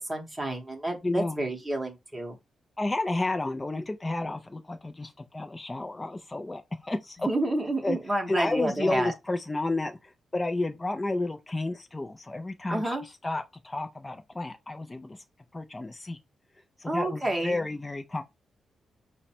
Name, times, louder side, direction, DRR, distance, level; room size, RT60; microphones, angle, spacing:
voice 1, 0.0-2.4 7.2-9.1 12.7-13.1 16.8-17.6, right 1 dB, 5° right, 0.9 m, -29 dB
voice 2, 1.0-1.4 2.8-7.3 7.8-8.0 8.3-15.2 15.5-16.2 16.8-18.2, left 2 dB, 15° left, 0.4 m, -31 dB
5.1 x 2.1 x 4.2 m
wide cardioid pair, 155°, 0 cm